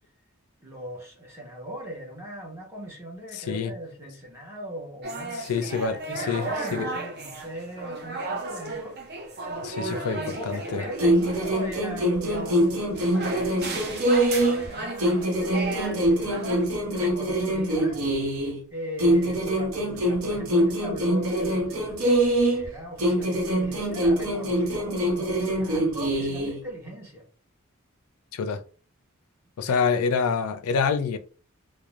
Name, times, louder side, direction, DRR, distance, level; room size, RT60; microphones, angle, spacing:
voice 1, 0.6-9.3 9.8-18.0 18.7-27.3 29.7-29.8, equal, 10° right, 0.7 m, -39 dB
voice 2, 3.3-3.7 5.5-6.9 9.6-10.2 10.5-10.8 28.3-28.6 29.6-31.2, left 5 dB, 90° left, 0.4 m, -26 dB
sound 1, 5.0-16.7, right 2 dB, 45° right, 0.5 m, -35 dB
sound 2, 11.0-14.7 15.0-18.6 19.0-22.7 23.0-26.6, right 1 dB, 80° right, 0.7 m, -24 dB
2.4 x 2.0 x 3.0 m
head